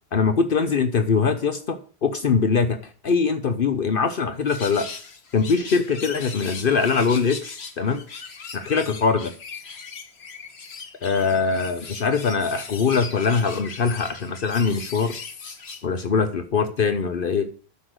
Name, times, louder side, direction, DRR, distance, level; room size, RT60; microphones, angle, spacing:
voice 1, 0.1-2.8 3.0-4.9 5.3-8.0 8.5-9.3 11.0-15.1 15.8-17.5, left 5 dB, 60° left, 9 dB, 1.0 m, -22 dB
sound 1, 4.5-15.8, left 5 dB, 85° left, 1.6 m, -39 dB
9.9 x 7.2 x 6.3 m, 0.40 s
omnidirectional pair, 1.1 m